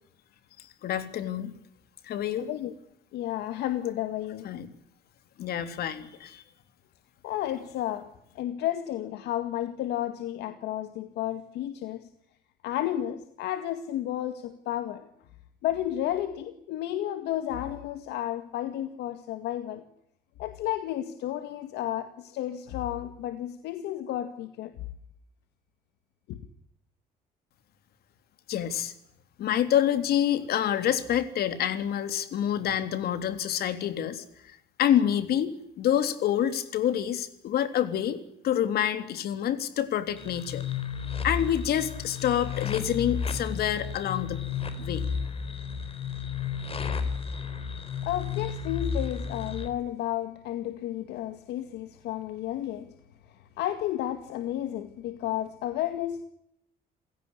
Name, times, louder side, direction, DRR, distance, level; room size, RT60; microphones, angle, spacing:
voice 1, 0.8-1.5 2.0-2.5 4.4-4.7 5.4-6.4 28.5-28.9 29.4-34.2 34.8-40.6 41.2-44.5 44.8-45.1, left 10 dB, 65° left, 3.5 m, -27 dB
voice 2, 2.4-2.7 3.1-4.5 7.2-12.1 12.6-15.1 15.6-19.8 20.4-24.7 26.3-26.4 48.1-52.9 53.6-56.2, left 12 dB, 80° left, 2.1 m, -32 dB
sound 1, 40.2-49.7, left 6 dB, 35° left, 4.3 m, -33 dB
29.0 x 17.0 x 10.0 m
cardioid pair, 110°, 17 cm